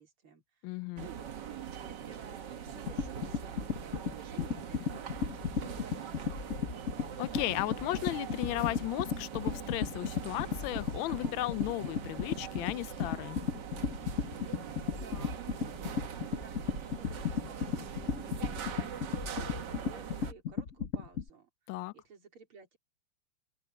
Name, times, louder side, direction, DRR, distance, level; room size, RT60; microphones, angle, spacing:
voice 1, 0.0-6.2 14.9-22.8, right 6 dB, 75° right, 4.8 m, -56 dB
voice 2, 0.6-1.1 7.2-13.4 21.7-21.9, left 17 dB, 75° left, 1.3 m, -35 dB
sound 1, 1.0-20.3, right 8 dB, 55° right, 1.7 m, -42 dB
sound 2, 2.7-21.3, left 6 dB, 45° left, 1.3 m, -35 dB
open air
omnidirectional pair, 2.4 m